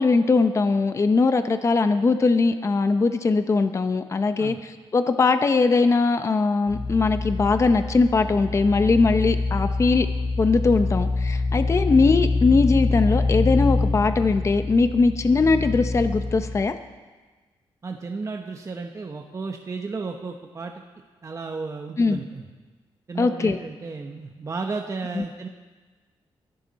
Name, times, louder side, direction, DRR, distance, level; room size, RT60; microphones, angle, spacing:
voice 1, 0.0-10.1 10.4-16.7 22.0-22.2 23.2-23.6 25.2-25.3, left 4 dB, 30° left, 9 dB, 0.7 m, -20 dB
sound 1, 6.7-16.6, left 3 dB, 70° left, 6.0 m, -25 dB
voice 2, 17.8-20.8 21.2-22.5 23.1-25.5, right 4 dB, 35° right, 3 dB, 1.1 m, -33 dB
23.5 x 12.0 x 4.2 m, 1.3 s
cardioid pair, 115°, 10 cm